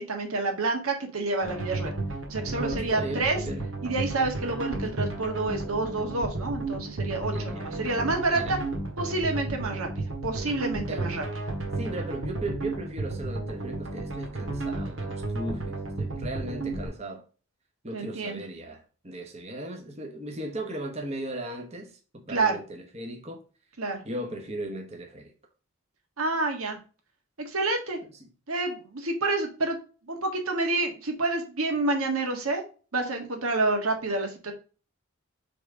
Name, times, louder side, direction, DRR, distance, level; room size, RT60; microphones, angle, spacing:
voice 1, 0.0-1.9 2.3-3.4 3.8-8.6 9.0-9.9 10.2-11.2 17.9-18.4 22.3-22.6 23.8-24.0 26.2-26.8 27.4-28.0 28.5-29.8 30.1-32.6 32.9-34.5, right 2 dB, 90° right, 1.6 m, -28 dB
sound 1, 1.4-16.9, right 2 dB, 65° right, 1.7 m, -33 dB
voice 2, 2.5-3.7 7.3-7.7 8.3-8.6 10.9-11.1 11.8-17.2 17.8-23.4 24.0-25.3, right 1 dB, 30° right, 1.1 m, -37 dB
6.1 x 3.5 x 5.1 m
head